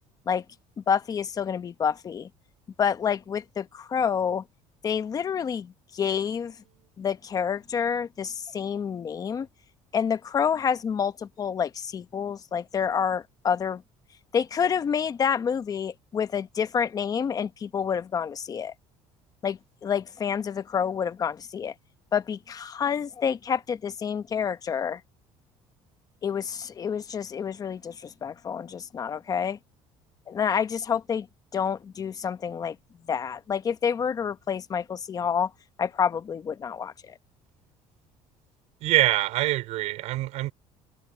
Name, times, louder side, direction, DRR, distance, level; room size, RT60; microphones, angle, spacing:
voice 1, 0.8-2.3 2.8-4.4 4.8-6.5 7.0-9.5 9.9-13.8 14.3-18.7 19.4-21.7 22.1-25.0 26.2-29.6 30.3-31.3 31.5-32.8 33.1-35.5 35.8-37.1, left 7 dB, 30° left, 1.1 m, -28 dB
voice 2, 38.8-40.5, right 17 dB, 70° right, 5.1 m, -25 dB
cardioid pair, 135°, 12 cm